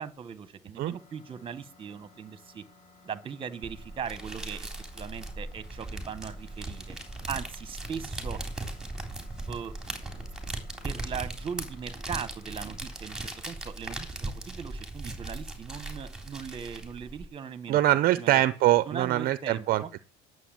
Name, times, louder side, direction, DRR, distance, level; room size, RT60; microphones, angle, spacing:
voice 1, 0.0-2.6 3.0-7.0 7.3-8.4 9.5-9.7 10.8-17.8 18.2-18.4 18.9-19.9, right 7 dB, 25° right, 1.3 m, -39 dB
sound 1, 0.9-13.4, left 4 dB, 40° left, 5.1 m, -58 dB
sound 2, 3.6-17.2, right 2 dB, 5° right, 3.7 m, -38 dB
voice 2, 17.7-20.0, right 14 dB, 50° right, 0.6 m, -24 dB
11.0 x 7.8 x 7.6 m
cardioid pair, 130°, 20 cm